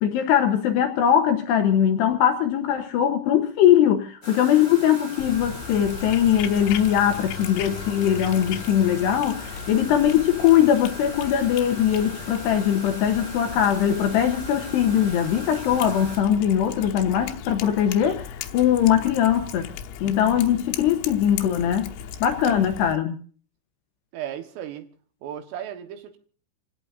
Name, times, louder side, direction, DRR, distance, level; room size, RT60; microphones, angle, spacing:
voice 1, 0.0-19.7 20.0-21.9 22.2-23.2, left 10 dB, 75° left, 2.7 m, -21 dB
sound 1, 4.2-16.2, left 1 dB, 15° left, 6.3 m, -39 dB
Cat, 5.2-23.0, left 9 dB, 90° left, 3.8 m, -37 dB
voice 2, 18.9-19.3 20.4-20.6 22.4-22.7 24.1-24.9 25.2-26.2, right 10 dB, 75° right, 3.9 m, -36 dB
28.5 x 17.5 x 2.6 m
omnidirectional pair, 5.8 m